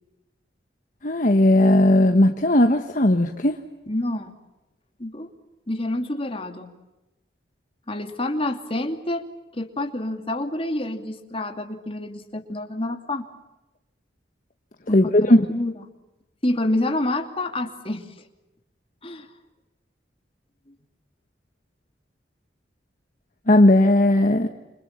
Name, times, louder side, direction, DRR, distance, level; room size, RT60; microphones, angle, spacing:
voice 1, 1.0-3.6 14.9-15.5 23.5-24.5, left 1 dB, 45° left, 6 dB, 1.4 m, -17 dB
voice 2, 3.9-4.3 5.0-5.3 5.7-6.7 7.9-9.2 9.5-13.3 14.9-15.7 16.4-18.1 19.0-19.3, left 1 dB, 30° left, 5 dB, 2.7 m, -28 dB
28.5 x 27.0 x 7.4 m, 1.0 s
head